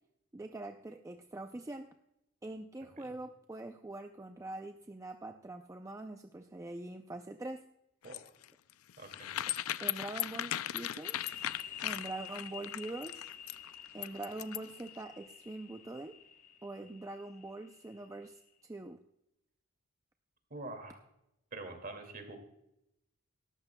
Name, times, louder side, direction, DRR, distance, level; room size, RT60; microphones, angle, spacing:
voice 1, 0.3-1.9 2.4-7.6 9.8-11.3 11.8-13.3 13.9-16.1 16.6-19.0, right 2 dB, 15° right, 6 dB, 0.4 m, -44 dB
sound 1, 8.0-14.8, left 13 dB, 75° left, 0.4 m, -37 dB
voice 2, 9.0-9.3 20.5-21.0 21.5-22.4, right 2 dB, 45° right, 5 dB, 2.2 m, -45 dB
sound 2, 11.0-18.5, left 9 dB, 35° left, 1.1 m, -50 dB
18.0 x 14.0 x 2.2 m, 0.84 s
head